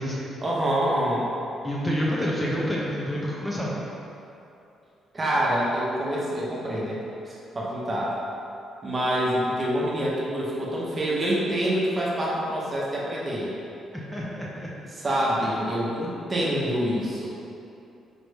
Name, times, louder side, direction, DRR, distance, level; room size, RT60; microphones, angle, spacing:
voice 1, 0.4-1.3 5.1-7.0 7.3-8.1 8.8-13.5 14.9-17.3, equal, 30° right, -5 dB, 0.9 m, -26 dB
voice 2, 1.6-3.7 13.9-14.7, equal, 10° left, -5 dB, 0.5 m, -28 dB
4.4 x 2.5 x 3.4 m, 2.7 s
cardioid pair, 90°, 0 cm